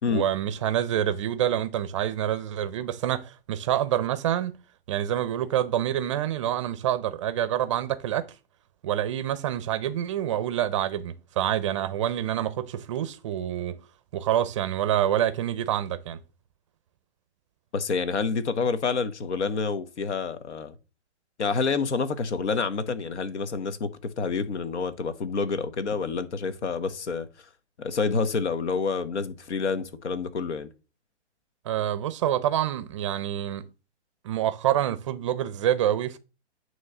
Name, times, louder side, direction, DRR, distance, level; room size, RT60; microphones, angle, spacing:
voice 1, 0.1-4.5 4.9-8.3 8.8-13.8 14.1-16.2 31.6-33.6 34.2-36.2, right 11 dB, 30° right, 0.5 m, -27 dB
voice 2, 17.7-20.7 21.4-27.3 27.8-30.7, left 5 dB, 75° left, 1.2 m, -28 dB
9.4 x 3.2 x 6.5 m
hypercardioid pair, 145°, 34 cm